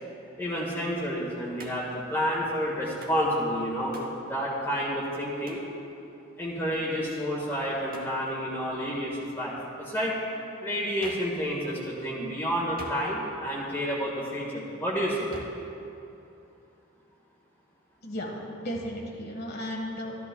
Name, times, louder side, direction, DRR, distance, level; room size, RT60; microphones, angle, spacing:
voice 1, 0.4-3.9 4.2-5.6 6.4-10.2 10.6-15.3, equal, 10° left, -6 dB, 1.5 m, -30 dB
Hands, 1.6-2.0 3.0-3.3 3.9-4.2 5.5-5.7 7.9-8.2 11.0-11.4 12.8-13.4 15.3-15.7, right 1 dB, 50° right, 1.1 m, -44 dB
voice 2, 18.0-20.2, equal, 55° left, 1 dB, 1.5 m, -35 dB
14.0 x 13.0 x 2.3 m, 2.8 s
head